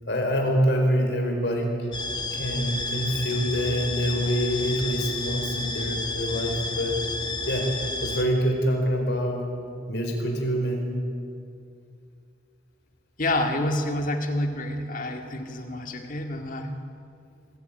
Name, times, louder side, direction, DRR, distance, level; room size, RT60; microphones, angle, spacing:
voice 1, 0.1-1.9 2.3-7.1 7.5-7.7 8.0-9.5 9.9-10.9, equal, 70° left, 2 dB, 4.4 m, -25 dB
sound 1, 1.9-8.2, left 2 dB, 25° left, 1.8 m, -31 dB
voice 2, 13.2-16.8, left 1 dB, 50° left, 4 dB, 2.0 m, -28 dB
25.5 x 15.0 x 9.0 m, 2.4 s
head